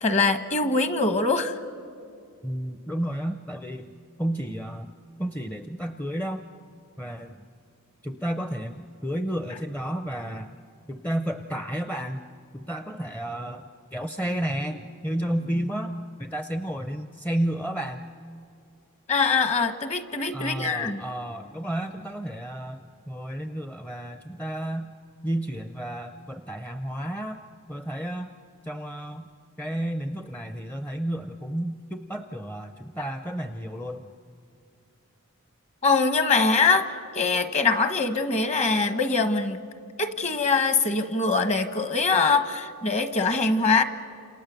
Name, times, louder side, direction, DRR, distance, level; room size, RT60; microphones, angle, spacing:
voice 1, 0.0-1.6 19.1-21.0 35.8-36.9 37.1-39.6 40.0-43.8, left 4 dB, 30° left, 9 dB, 1.1 m, -23 dB
voice 2, 2.4-3.9 4.2-4.9 5.2-6.4 7.0-7.5 8.0-10.5 10.9-12.2 12.5-13.6 13.9-18.0 20.3-24.9 25.2-28.3 28.6-29.3 29.6-34.1, right 1 dB, 5° left, 7 dB, 0.6 m, -32 dB
29.5 x 28.0 x 6.8 m, 2.5 s
head